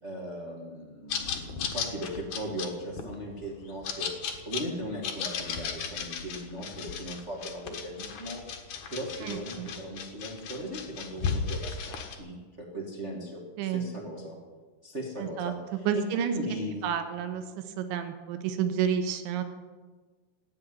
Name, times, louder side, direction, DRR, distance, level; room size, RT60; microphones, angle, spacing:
voice 1, 0.0-8.4 8.9-14.4 14.8-16.9, equal, 60° right, -2 dB, 0.7 m, -38 dB
sound 1, 1.1-12.2, left 6 dB, 65° left, 2.0 m, -35 dB
voice 2, 9.2-9.7 13.6-13.9 15.2-15.5 15.9-16.3 16.8-17.4 17.8-19.4, right 8 dB, 80° right, 7 dB, 3.5 m, -30 dB
16.0 x 8.8 x 9.6 m, 1.4 s
omnidirectional pair, 5.5 m